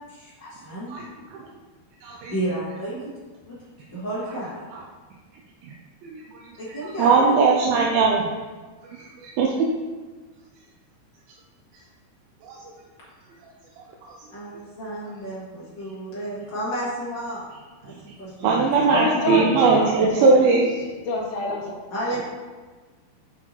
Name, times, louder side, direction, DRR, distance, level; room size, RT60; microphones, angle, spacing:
voice 1, 0.1-0.9 2.3-3.0 3.5-3.6 3.9-4.6 6.6-7.2 14.3-17.4 17.8-17.9 18.2-18.6 18.9-19.1 21.9-22.2, right 1 dB, 45° left, -8 dB, 1.5 m, -31 dB
voice 2, 2.0-2.3 4.7-4.8 6.0-6.4 7.0-8.3 8.8-9.7 12.4-12.6 18.4-20.9, right 4 dB, 80° right, -1 dB, 2.2 m, -20 dB
voice 3, 18.8-20.3 21.0-21.7, left 2 dB, 70° left, -2 dB, 1.8 m, -26 dB
6.1 x 5.7 x 2.9 m, 1.3 s
omnidirectional pair, 4.6 m